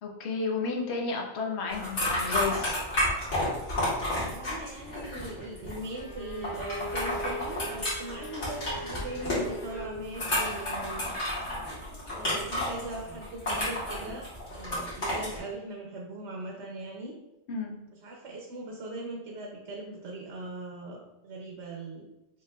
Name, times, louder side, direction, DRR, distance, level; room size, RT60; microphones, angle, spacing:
voice 1, 0.0-2.8 17.5-17.8, left 4 dB, 70° left, 0 dB, 1.0 m, -32 dB
sound 1, 1.7-15.4, left 1 dB, 90° left, 2.1 m, -31 dB
voice 2, 4.1-11.1 12.1-17.1 17.9-22.1, right 2 dB, 75° right, 0 dB, 0.9 m, -40 dB
Bowed string instrument, 5.9-10.0, equal, 45° left, 0.4 m, -41 dB
5.3 x 3.2 x 2.2 m, 0.99 s
omnidirectional pair, 1.2 m